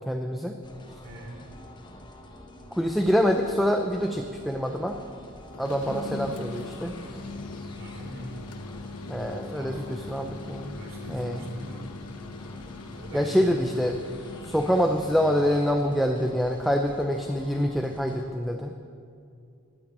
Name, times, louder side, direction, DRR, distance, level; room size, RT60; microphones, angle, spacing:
voice 1, 0.1-0.6 2.7-5.0 5.6-7.0 9.1-10.8 11.1-11.4 13.1-14.0 14.4-18.7, equal, ahead, 4 dB, 0.5 m, -26 dB
sound 1, 0.6-18.3, left 1 dB, 20° left, 1.4 m, -47 dB
voice 2, 1.0-1.4 7.8-8.4 9.2-10.2 10.7-11.9 12.8-13.6, equal, 60° right, 0 dB, 3.4 m, -42 dB
sound 2, 5.5-15.6, left 3 dB, 90° left, 1.1 m, -40 dB
13.0 x 10.0 x 9.0 m, 2.4 s
head